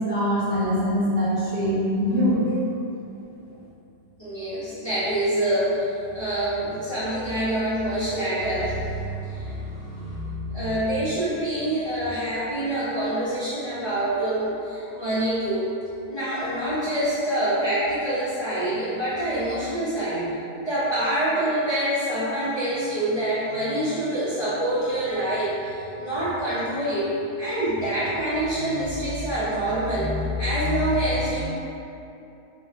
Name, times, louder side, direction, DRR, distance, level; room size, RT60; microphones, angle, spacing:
voice 1, 0.0-2.5, equal, 70° right, -8 dB, 1.5 m, -23 dB
voice 2, 4.2-15.7 16.1-31.4, right 1 dB, 20° left, -13 dB, 1.2 m, -26 dB
6.0 x 3.0 x 2.8 m, 2.8 s
omnidirectional pair, 1.7 m